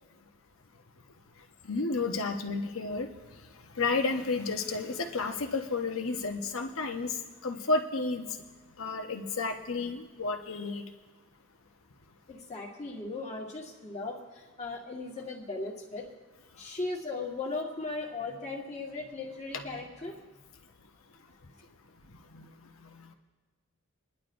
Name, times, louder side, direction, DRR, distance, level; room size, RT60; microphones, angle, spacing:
voice 1, 1.6-3.1 3.8-7.1 7.4-8.3 8.8-10.8 22.3-22.5 22.8-23.1, left 3 dB, 85° left, 5 dB, 1.0 m, -31 dB
voice 2, 12.3-16.0 16.6-20.2, left 3 dB, 35° left, -1 dB, 1.6 m, -37 dB
24.5 x 11.0 x 2.6 m, 1.3 s
head